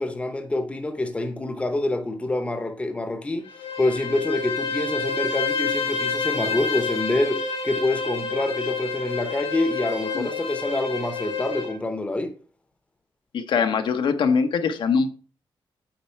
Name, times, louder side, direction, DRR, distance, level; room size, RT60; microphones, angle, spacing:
voice 1, 0.0-3.4 3.8-12.3, left 2 dB, 15° left, 0.9 m, -26 dB
Bowed string instrument, 3.4-11.8, left 4 dB, 80° left, 1.7 m, -29 dB
voice 2, 13.3-15.1, left 5 dB, 65° left, 0.9 m, -22 dB
8.8 x 5.4 x 4.5 m
wide cardioid pair, 165°, 9 cm